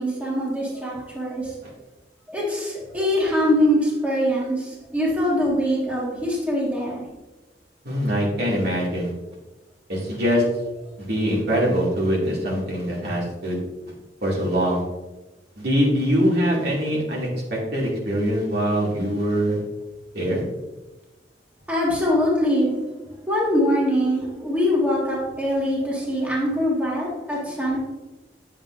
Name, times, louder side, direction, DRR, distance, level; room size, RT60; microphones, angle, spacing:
voice 1, 0.0-1.5 2.3-7.0 21.7-22.9 23.3-27.8, equal, 10° right, -5 dB, 1.6 m, -23 dB
voice 2, 7.8-9.1 9.9-10.4 11.0-13.6 14.2-14.8 15.6-19.6 20.1-20.4, equal, 60° right, -4 dB, 2.3 m, -23 dB
9.3 x 7.3 x 2.6 m, 1.1 s
head